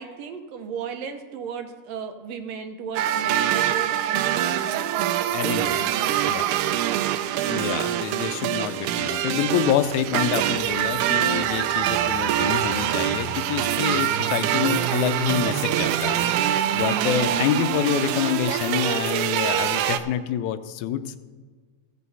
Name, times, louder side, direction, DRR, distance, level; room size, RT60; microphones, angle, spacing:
voice 1, 0.0-5.2 5.4-7.3, right 6 dB, 70° right, 7 dB, 1.8 m, -35 dB
sound 1, 3.0-20.0, right 11 dB, 90° right, 2.0 m, -24 dB
voice 2, 5.3-5.8 6.3-6.5 7.4-21.2, left 10 dB, 85° left, 10 dB, 2.0 m, -27 dB
15.5 x 6.4 x 5.5 m, 1.5 s
omnidirectional pair, 3.4 m